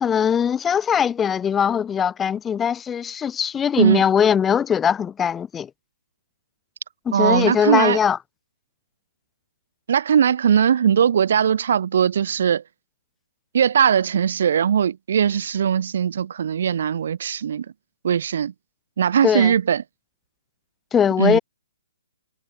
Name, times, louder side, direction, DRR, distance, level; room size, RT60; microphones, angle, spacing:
voice 1, 0.0-5.7 7.1-8.2 19.2-19.5 20.9-21.4, left 8 dB, 15° left, 1.0 m, -20 dB
voice 2, 7.1-8.0 9.9-12.6 13.5-17.7 18.0-18.5 19.0-19.8 21.2-21.4, right 8 dB, 60° right, 0.4 m, -19 dB
hypercardioid pair, 140°, 0 cm